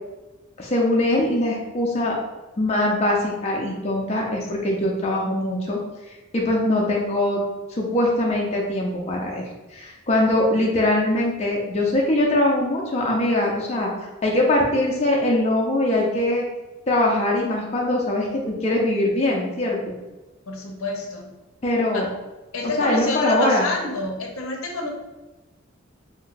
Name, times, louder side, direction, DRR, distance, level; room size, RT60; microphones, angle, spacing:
voice 1, 0.6-2.2 2.6-5.8 6.3-7.4 7.7-13.9 14.2-16.4 16.9-19.9 21.6-22.0 22.8-23.6, left 1 dB, 30° left, -2 dB, 0.4 m, -22 dB
voice 2, 20.5-21.3 21.9-22.1 22.5-24.9, left 2 dB, 75° left, 1 dB, 0.6 m, -27 dB
2.5 x 2.2 x 3.8 m, 1.1 s
head